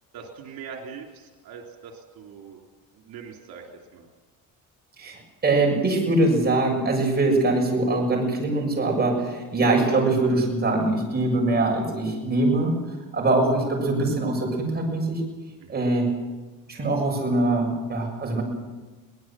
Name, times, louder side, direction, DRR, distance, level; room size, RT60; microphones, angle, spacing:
voice 1, 0.1-2.6 2.9-3.6 3.9-4.1 15.6-15.8, right 6 dB, 85° right, 1 dB, 3.4 m, -42 dB
voice 2, 5.0-12.7 13.1-15.2 15.7-16.1 16.7-18.4, right 2 dB, 30° right, 0 dB, 6.9 m, -23 dB
23.0 x 19.0 x 7.5 m, 1.3 s
cardioid pair, 135°, 35 cm